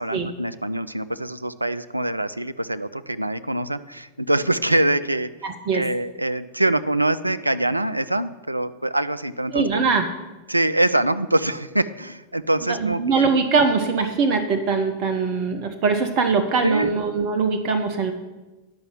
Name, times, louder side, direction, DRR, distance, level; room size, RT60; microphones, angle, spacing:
voice 1, 0.0-5.3 5.7-9.8 10.5-13.3 16.6-16.9, right 1 dB, 85° right, 12 dB, 0.3 m, -24 dB
voice 2, 5.4-5.8 9.5-10.1 12.6-18.1, right 4 dB, 40° right, 7 dB, 0.8 m, -22 dB
10.5 x 5.5 x 7.5 m, 1.1 s
figure-of-eight pair, 90°, 0 cm